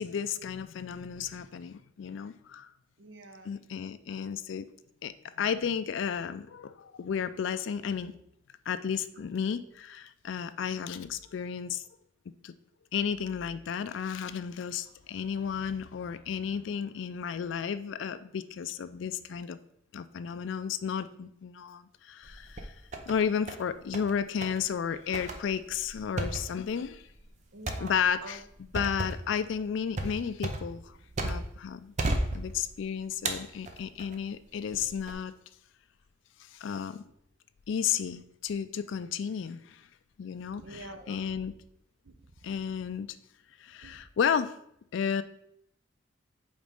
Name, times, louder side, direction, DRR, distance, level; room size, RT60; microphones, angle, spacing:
voice 1, 0.0-2.7 3.4-4.7 5.0-8.1 8.7-11.8 12.4-12.5 12.9-19.6 19.9-22.7 23.1-27.0 27.8-31.9 32.3-35.3 36.4-37.1 37.7-39.9 40.2-41.5 42.4-43.1 43.6-44.5 44.9-45.2, left 7 dB, 75° left, 12 dB, 0.4 m, -33 dB
voice 2, 3.0-3.5 19.0-19.1 27.5-28.4 40.6-41.5 42.0-42.6 43.8-44.0, right 2 dB, 75° right, 8 dB, 0.7 m, -47 dB
sound 1, 22.2-23.1 23.5-24.1 24.4-24.6 25.1-31.6 32.0-32.8 33.3-34.2 34.7-35.1, right 2 dB, 35° right, 0.6 m, -34 dB
5.2 x 4.0 x 5.2 m, 0.73 s
head